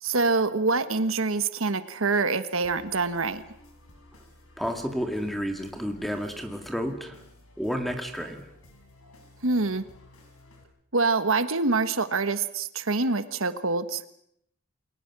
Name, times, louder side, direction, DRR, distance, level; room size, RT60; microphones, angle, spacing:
voice 1, 0.0-3.4 9.4-9.8 10.9-14.0, right 3 dB, 75° right, 11 dB, 1.4 m, -25 dB
sound 1, 2.6-10.6, left 1 dB, 85° left, 5.5 m, -53 dB
voice 2, 4.6-7.2 7.6-8.5, equal, ahead, 5 dB, 2.1 m, -31 dB
29.0 x 21.5 x 6.1 m, 0.73 s
head